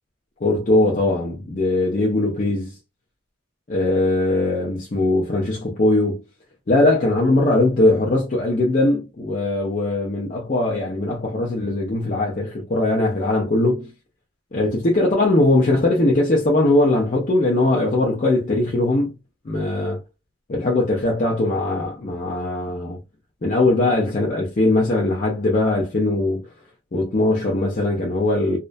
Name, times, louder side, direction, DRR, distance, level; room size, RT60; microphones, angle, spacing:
voice 1, 0.4-2.7 3.7-6.2 6.7-13.9 14.5-19.1 19.5-20.0 20.5-23.0 23.4-26.5 26.9-28.6, left 2 dB, 40° left, 0.5 m, -20 dB
2.4 x 2.1 x 2.4 m
head